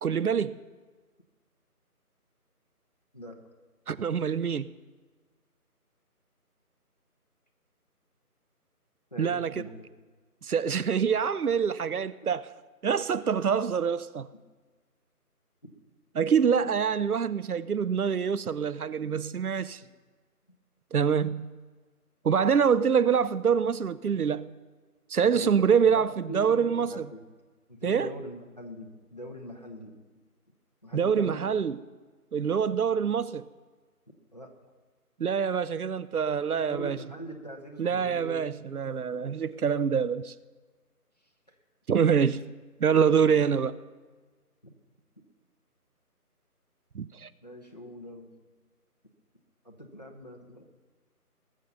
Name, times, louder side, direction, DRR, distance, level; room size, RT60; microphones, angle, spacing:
voice 1, 0.0-0.6 3.9-4.7 9.2-9.6 10.4-12.5 12.8-14.3 16.2-19.8 20.9-21.5 22.2-24.5 25.1-27.1 27.8-28.1 30.9-31.8 32.3-33.5 35.2-37.0 37.8-40.3 41.9-42.5 42.8-43.8 46.9-47.3, right 7 dB, 70° right, 0.6 m, -25 dB
voice 2, 9.1-9.9 13.2-13.3 25.2-27.2 27.7-29.9 30.8-31.4 34.3-34.5 36.5-38.4 44.6-44.7 47.4-48.3 49.6-50.6, equal, 25° left, 1.0 m, -42 dB
20.0 x 7.3 x 5.5 m
figure-of-eight pair, 170°, 46 cm